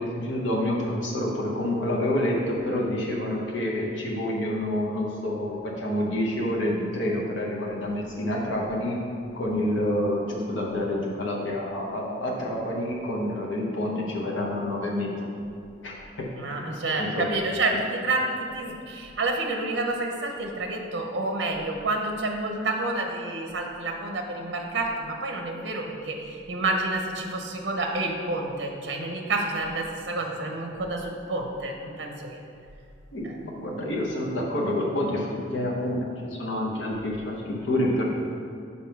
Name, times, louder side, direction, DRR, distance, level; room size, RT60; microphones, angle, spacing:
voice 1, 0.0-9.0 9.3-15.3 15.8-15.9 16.5-16.7 17.0-17.3 33.1-38.0, left 1 dB, 70° left, -3 dB, 1.0 m, -28 dB
voice 2, 16.4-32.4 33.2-33.4, right 2 dB, 60° right, 2 dB, 0.7 m, -29 dB
5.2 x 4.3 x 5.8 m, 2.4 s
head